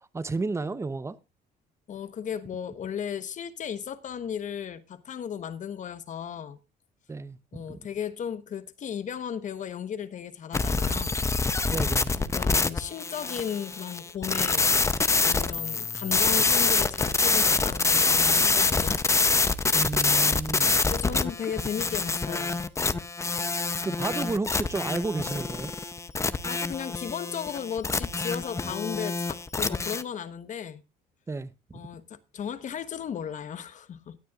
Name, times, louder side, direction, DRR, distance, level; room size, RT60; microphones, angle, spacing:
voice 1, 0.1-1.2 7.1-7.4 7.7-7.8 11.7-12.1 19.7-20.8 23.8-25.7 31.3-31.5, right 3 dB, 15° right, 0.8 m, -31 dB
voice 2, 1.9-6.6 7.5-11.2 12.2-14.7 15.2-19.0 20.9-22.6 26.4-30.8 31.7-34.2, left 8 dB, 45° left, 1.1 m, -35 dB
sound 1, 10.5-30.0, left 4 dB, 15° left, 0.7 m, -26 dB
17.0 x 9.3 x 2.4 m
cardioid pair, 110°, 17 cm